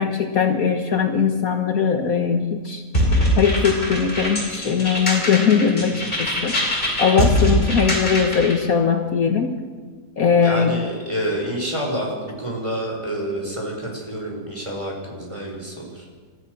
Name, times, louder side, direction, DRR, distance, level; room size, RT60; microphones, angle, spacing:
voice 1, 0.0-2.8 3.4-6.6 7.0-9.5 10.2-10.7, left 6 dB, 60° left, 5 dB, 1.7 m, -20 dB
sound 1, 2.9-8.6, equal, 30° left, 5.5 m, -22 dB
voice 2, 10.4-16.1, right 1 dB, 15° right, -1 dB, 5.5 m, -28 dB
30.0 x 13.5 x 6.7 m, 1.5 s
omnidirectional pair, 1.8 m